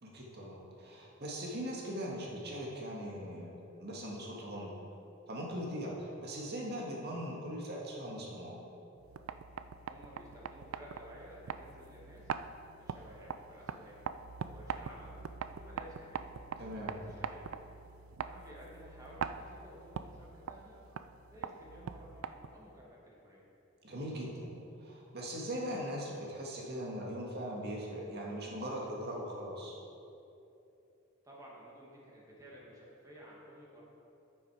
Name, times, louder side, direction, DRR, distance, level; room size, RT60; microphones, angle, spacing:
voice 1, 0.0-3.5 3.8-4.7 5.3-8.5 16.6-16.9 23.8-24.5 24.8-29.8, equal, 55° right, -2 dB, 1.7 m, -40 dB
sound 1, 9.0-22.7, right 6 dB, 75° right, 0.3 m, -43 dB
voice 2, 9.9-12.3 12.8-14.0 14.5-16.3 16.7-17.4 18.2-20.8 21.3-23.5 31.2-33.8, equal, 15° right, -4 dB, 1.8 m, -54 dB
8.8 x 7.3 x 4.8 m, 2.8 s
head